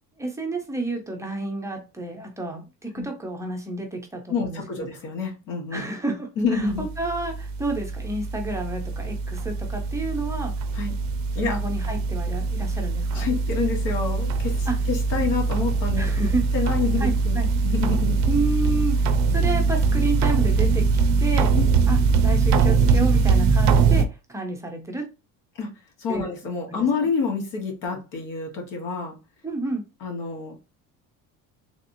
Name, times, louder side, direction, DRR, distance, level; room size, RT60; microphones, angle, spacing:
voice 1, 0.2-4.9 5.7-10.5 11.4-13.3 14.7-14.8 16.0-16.4 17.0-17.5 18.3-21.6 21.9-25.1 26.1-26.3 26.7-26.9 29.4-29.8, right 2 dB, 10° right, 2 dB, 0.5 m, -30 dB
voice 2, 4.3-5.8 6.4-6.9 10.7-10.9 11.3-11.6 13.1-16.1 16.5-17.4 17.6-18.2 21.5-21.7 25.5-25.7 26.0-29.2 30.0-30.6, left 4 dB, 65° left, 1 dB, 1.3 m, -28 dB
sound 1, 6.7-24.0, right 4 dB, 55° right, 0.5 m, -22 dB
3.5 x 2.8 x 2.6 m, 0.28 s
cardioid pair, 165°, 34 cm